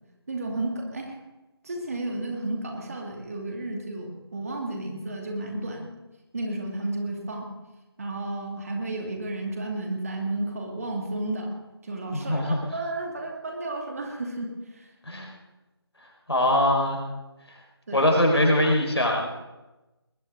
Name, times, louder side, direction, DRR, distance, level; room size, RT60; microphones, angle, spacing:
voice 1, 0.3-1.2 1.6-5.9 6.3-7.5 8.0-11.5 11.8-14.9 17.9-18.0, right 2 dB, 35° right, 1 dB, 2.5 m, -32 dB
voice 2, 12.1-12.6 15.0-15.3 16.3-17.0 17.9-19.3, left 1 dB, 75° left, 0 dB, 5.0 m, -22 dB
20.5 x 18.5 x 3.9 m, 1.1 s
figure-of-eight pair, 160°, 14 cm